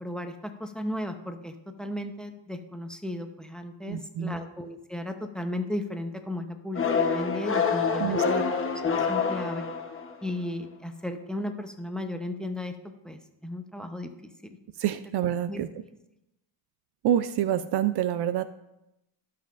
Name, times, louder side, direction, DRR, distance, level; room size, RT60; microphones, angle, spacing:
voice 1, 0.0-8.5 8.7-9.6 10.2-12.8 13.0-14.1 14.4-14.6 15.5-15.6, left 1 dB, ahead, 6 dB, 0.7 m, -35 dB
voice 2, 3.9-4.3 8.0-8.2 14.8-15.7 17.0-18.4, right 10 dB, 55° right, 12 dB, 0.5 m, -27 dB
sound 1, 6.8-10.3, left 5 dB, 25° left, 1.0 m, -26 dB
17.0 x 5.7 x 2.5 m, 0.90 s
cardioid pair, 100°, 49 cm